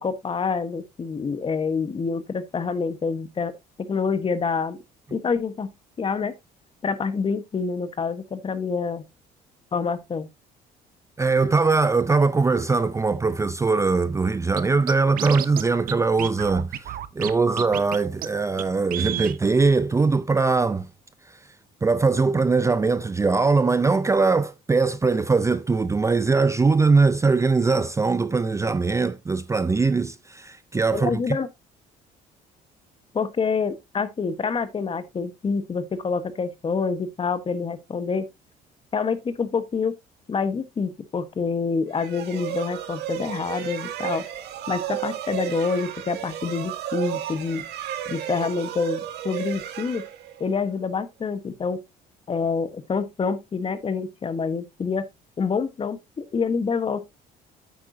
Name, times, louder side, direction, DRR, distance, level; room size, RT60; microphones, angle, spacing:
voice 1, 0.0-3.5 3.9-4.8 5.1-5.7 6.0-6.3 6.8-9.0 9.7-10.3 30.9-31.5 33.1-38.2 38.9-39.9 40.3-44.2 44.7-47.6 48.1-50.0 50.4-51.8 52.3-55.0 55.4-57.0, left 5 dB, 30° left, 1.3 m, -27 dB
voice 2, 11.2-20.9 21.8-31.4, right 4 dB, 15° right, 0.5 m, -21 dB
Scratching (performance technique), 14.6-14.7 14.9-15.6 15.9-16.0 16.2-17.3 17.6-18.0 18.2-18.3 18.6-18.7 18.9-19.4, right 12 dB, 60° right, 0.8 m, -30 dB
sound 1, 41.9-50.7, right 10 dB, 75° right, 2.1 m, -33 dB
9.0 x 8.5 x 2.7 m
cardioid pair, 110°, 17 cm